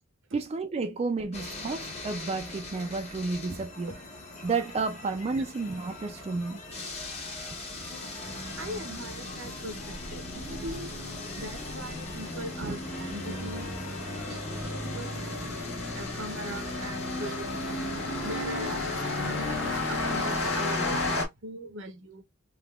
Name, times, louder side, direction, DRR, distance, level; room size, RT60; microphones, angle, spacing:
voice 1, 0.3-3.9 4.4-6.6, right 4 dB, 30° right, 0.3 m, -31 dB
sound 1, 1.3-21.2, left 2 dB, 35° left, 1.1 m, -40 dB
voice 2, 7.9-11.0 11.4-15.4 15.9-17.6 18.2-19.0 19.3-21.2 21.4-22.2, right 1 dB, 70° right, 0.8 m, -41 dB
sound 2, 8.2-21.3, left 2 dB, 85° left, 1.7 m, -34 dB
3.5 x 2.8 x 2.3 m
head